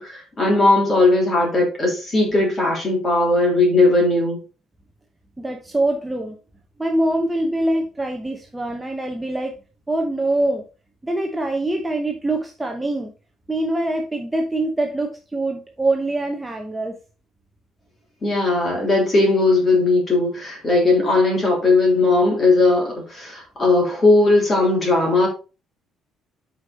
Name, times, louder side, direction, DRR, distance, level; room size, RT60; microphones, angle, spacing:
voice 1, 0.0-4.4 18.2-25.3, left 2 dB, 25° left, 3.3 m, -18 dB
voice 2, 5.4-6.4 6.8-9.5 9.9-10.6 11.0-13.1 13.5-17.0, right 1 dB, 10° right, 0.8 m, -24 dB
8.0 x 5.0 x 4.1 m
cardioid pair, 165°, 0 cm